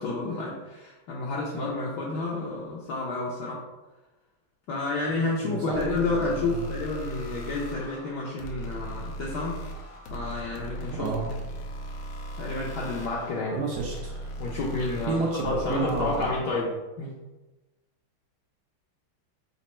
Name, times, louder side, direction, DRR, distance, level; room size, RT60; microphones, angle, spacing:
voice 1, 0.0-3.6 4.7-9.6 10.1-11.1 12.4-13.6 14.4-16.7 17.0-17.1, left 3 dB, 65° left, -5 dB, 1.1 m, -30 dB
voice 2, 5.4-6.7 10.9-11.3 13.5-14.3 15.1-16.3, right 4 dB, 70° right, -1 dB, 1.0 m, -31 dB
sound 1, 5.7-16.4, right 1 dB, 90° left, 1.5 m, -38 dB
4.2 x 2.5 x 4.2 m, 1.1 s
omnidirectional pair, 2.2 m